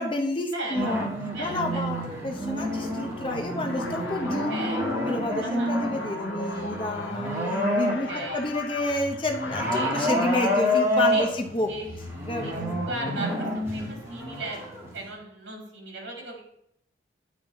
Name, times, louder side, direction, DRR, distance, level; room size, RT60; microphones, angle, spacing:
voice 1, 0.0-1.1 1.4-4.7 5.0-7.4 7.7-11.7 12.3-12.8, left 2 dB, 25° left, 3 dB, 0.7 m, -30 dB
voice 2, 0.5-2.0 4.5-4.9 5.4-5.7 8.1-8.4 9.7-10.0 11.1-11.3 11.7-11.9 12.4-12.5 12.9-16.4, right 2 dB, 70° right, 0 dB, 2.0 m, -37 dB
sound 1, 0.7-8.4 8.7-15.1, equal, 15° right, 1.3 m, -29 dB
sound 2, 3.6-11.1, left 4 dB, 70° left, 0.6 m, -38 dB
8.6 x 4.0 x 4.1 m, 0.75 s
head